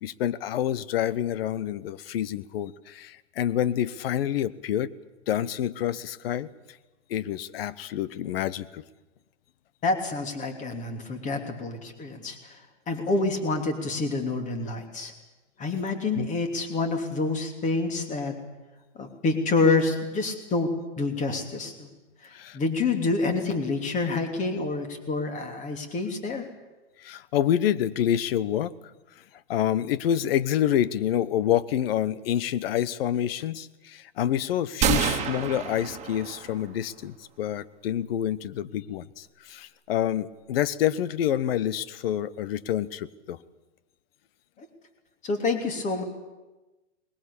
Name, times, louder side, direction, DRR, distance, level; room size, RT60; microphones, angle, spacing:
voice 1, 0.0-4.9 5.3-6.5 7.1-8.8 16.2-16.3 22.3-22.6 27.0-28.7 29.5-43.4, left 11 dB, 55° left, 18 dB, 1.1 m, -27 dB
voice 2, 9.8-15.1 15.6-18.4 18.9-20.7 21.0-21.9 22.2-26.5 44.6-44.7 45.2-46.0, left 3 dB, 20° left, 6 dB, 3.0 m, -27 dB
sound 1, 34.8-36.7, right 8 dB, 20° right, 2.3 m, -27 dB
21.0 x 20.5 x 8.6 m, 1.1 s
hypercardioid pair, 135°, 36 cm